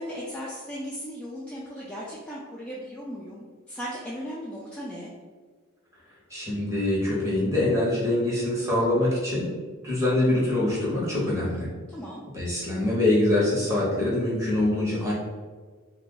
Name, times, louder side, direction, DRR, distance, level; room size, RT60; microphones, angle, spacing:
voice 1, 0.0-5.1 11.9-12.2, equal, 5° left, -7 dB, 0.3 m, -37 dB
voice 2, 6.3-9.5 9.8-11.7 12.3-15.1, left 1 dB, 15° right, -6 dB, 0.9 m, -24 dB
2.8 x 2.4 x 3.8 m, 1.5 s
head